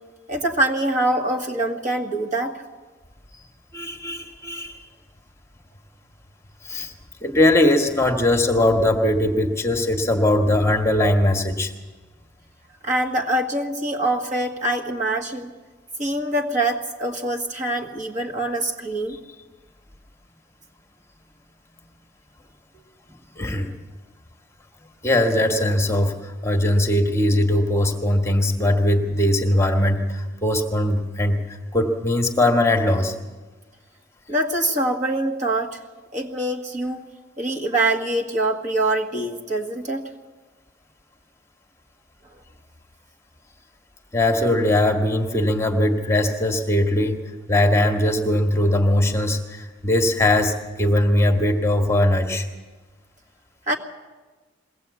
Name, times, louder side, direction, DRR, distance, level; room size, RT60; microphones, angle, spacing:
voice 1, 0.3-2.6 12.8-15.5 16.0-19.2 34.3-35.8 36.1-37.1 37.4-40.0 53.7-53.8, right 1 dB, 40° right, 2 dB, 1.8 m, -24 dB
voice 2, 3.7-4.8 6.6-6.9 7.2-11.7 19.1-19.2 23.4-23.7 25.0-31.4 31.7-33.1 44.1-47.2 47.5-52.5, left 1 dB, 15° left, 3 dB, 1.5 m, -20 dB
22.0 x 17.0 x 8.3 m, 1.2 s
head